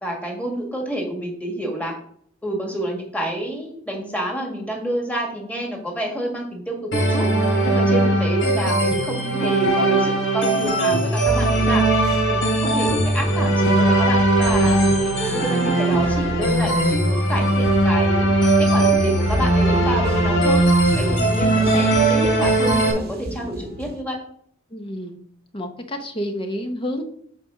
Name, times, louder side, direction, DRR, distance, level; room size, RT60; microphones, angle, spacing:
voice 1, 0.0-1.9 2.4-7.3 7.6-11.8 12.3-18.3 18.7-20.6 20.9-24.2, right 1 dB, 5° left, 0 dB, 1.8 m, -28 dB
sound 1, 6.9-22.9, right 1 dB, 75° left, 2.8 m, -19 dB
sound 2, 11.2-24.0, equal, 50° right, 0.9 m, -32 dB
voice 2, 24.7-25.2 25.5-27.0, equal, 25° left, 6 dB, 0.8 m, -29 dB
8.3 x 5.0 x 3.8 m, 0.62 s
head